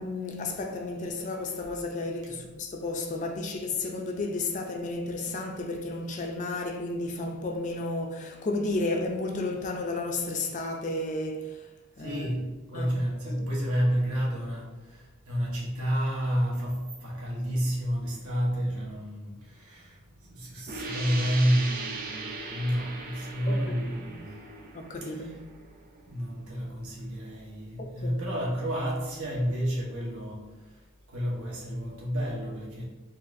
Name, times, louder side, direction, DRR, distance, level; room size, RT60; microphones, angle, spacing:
voice 1, 0.0-11.7 12.0-12.3 12.7-12.9 13.3-13.5 23.5-23.6 23.8-24.1 24.7-25.3 27.8-28.3, left 2 dB, 35° left, 0.4 m, -32 dB
voice 2, 12.0-24.4 25.0-25.3 25.9-32.9, equal, 80° right, 1.0 m, -30 dB
sound 1, 20.7-26.1, right 3 dB, 40° right, 0.4 m, -39 dB
3.9 x 2.4 x 2.6 m
head